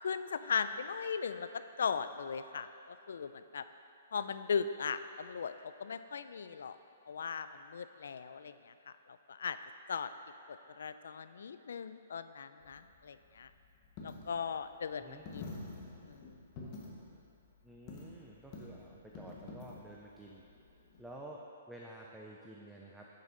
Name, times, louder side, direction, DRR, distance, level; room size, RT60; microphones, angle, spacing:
voice 1, 0.0-1.5 1.8-2.7 3.1-3.6 4.1-6.8 7.1-8.7 9.3-9.6 9.9-10.1 10.5-13.5 14.0-15.5 16.0-16.4, left 6 dB, 70° left, 12 dB, 0.4 m, -38 dB
Coin (dropping), 12.6-21.2, left 3 dB, 20° left, 1.0 m, -49 dB
voice 2, 17.6-20.4 21.0-23.1, right 1 dB, ahead, -3 dB, 0.3 m, -51 dB
10.5 x 6.7 x 3.8 m, 2.6 s
hypercardioid pair, 180°, 0 cm